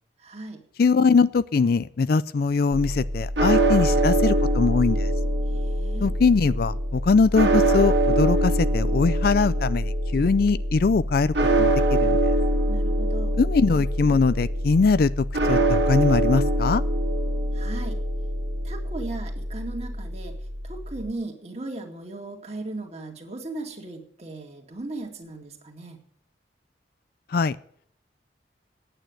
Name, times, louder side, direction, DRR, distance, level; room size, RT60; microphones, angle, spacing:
voice 1, 0.2-0.6 5.5-6.1 12.7-13.4 17.5-18.0 18.6-20.4 20.6-26.0, right 2 dB, 35° right, 2 dB, 2.1 m, -37 dB
voice 2, 0.8-5.1 6.0-12.2 13.4-16.8 27.3-27.6, left 4 dB, 55° left, 17 dB, 0.4 m, -22 dB
sound 1, 2.7-21.1, right 1 dB, 80° right, 1.9 m, -24 dB
9.0 x 8.9 x 9.0 m, 0.63 s
head